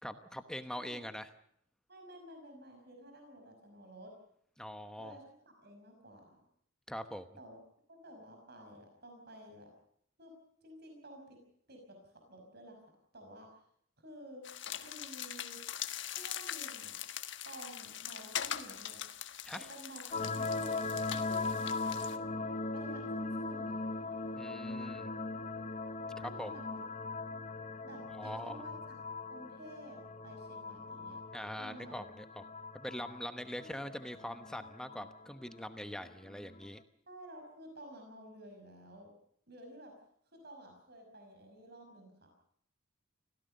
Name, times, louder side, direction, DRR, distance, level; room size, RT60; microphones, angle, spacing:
voice 1, 0.0-1.3 4.6-5.2 6.9-7.3 19.4-19.7 24.4-25.1 26.2-26.5 28.1-28.8 31.3-32.4 32.7-36.8, equal, 5° left, 8 dB, 1.0 m, -43 dB
voice 2, 0.7-1.1 1.9-4.1 5.0-5.4 5.6-6.4 7.4-7.6 7.9-9.7 10.2-10.3 10.6-11.4 11.7-12.8 13.1-13.6 14.0-14.5 14.8-15.6 16.0-17.0 17.4-19.0 19.5-20.8 21.2-21.8 22.7-23.8 26.2-26.8 27.8-29.0 29.3-31.2 31.6-32.0 33.6-33.9 37.1-39.1 39.5-39.9 40.3-42.3, right 1 dB, 55° right, 4 dB, 5.7 m, -52 dB
sound 1, 14.4-22.2, left 10 dB, 60° left, 1.5 m, -42 dB
sound 2, 20.1-36.7, left 3 dB, 35° left, 1.0 m, -40 dB
26.0 x 17.0 x 6.6 m, 0.68 s
head